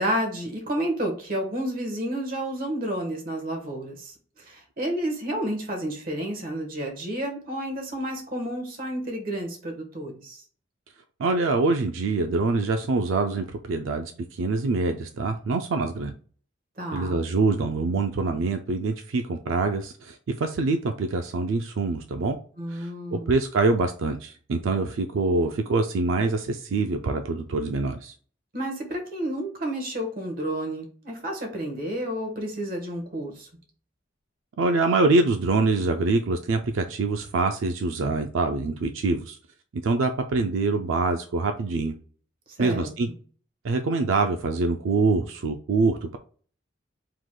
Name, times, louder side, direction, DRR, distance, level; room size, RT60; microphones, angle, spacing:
voice 1, 0.0-4.1 4.5-10.4 16.8-17.2 22.6-23.3 28.5-33.5 42.6-42.9, right 1 dB, 50° right, 3 dB, 1.3 m, -30 dB
voice 2, 11.2-16.1 16.9-22.4 22.7-28.1 34.6-39.4 39.8-41.9 42.6-43.1 43.6-46.2, right 3 dB, 85° right, 6 dB, 0.4 m, -25 dB
4.7 x 3.7 x 2.2 m, 0.44 s
head